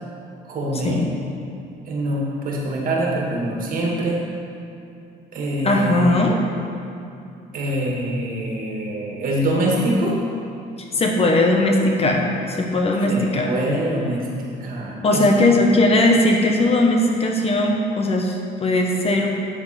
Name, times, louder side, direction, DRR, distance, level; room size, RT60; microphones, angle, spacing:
voice 1, 0.5-1.0 1.9-4.2 5.3-6.2 7.5-10.2 13.1-15.3, right 1 dB, 55° right, -2 dB, 2.1 m, -24 dB
voice 2, 5.6-6.4 10.9-13.5 15.0-19.3, left 1 dB, 35° left, 1 dB, 1.1 m, -18 dB
8.6 x 7.5 x 4.3 m, 2.7 s
cardioid pair, 110°, 17 cm